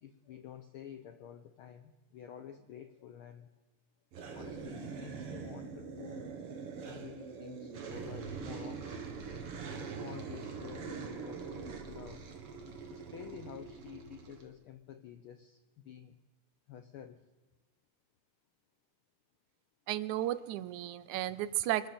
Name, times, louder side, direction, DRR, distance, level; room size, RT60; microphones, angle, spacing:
voice 1, 0.0-3.5 4.3-6.2 6.8-9.1 9.7-12.3 12.9-16.2 16.7-17.3, left 9 dB, 80° left, 9 dB, 1.2 m, -50 dB
sound 1, 4.1-14.5, right 5 dB, 55° right, 2.4 m, -43 dB
voice 2, 19.9-21.9, right 14 dB, 85° right, 16 dB, 2.1 m, -33 dB
25.0 x 13.0 x 4.4 m, 1.1 s
omnidirectional pair, 3.4 m